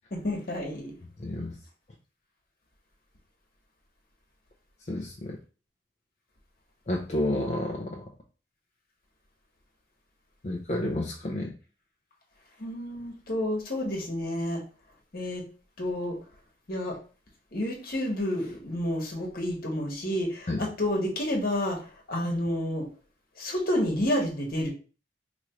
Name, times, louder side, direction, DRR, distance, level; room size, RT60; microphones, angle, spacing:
voice 1, 0.1-0.9 12.6-14.6 15.1-15.4 15.8-16.2 16.7-17.0 17.5-22.8 23.4-24.7, left 1 dB, 55° left, 0 dB, 1.3 m, -30 dB
voice 2, 1.2-1.6 4.9-5.4 6.9-8.0 10.4-11.5 20.5-20.6, left 1 dB, 40° left, -1 dB, 0.5 m, -30 dB
3.0 x 2.5 x 4.3 m, 0.37 s
head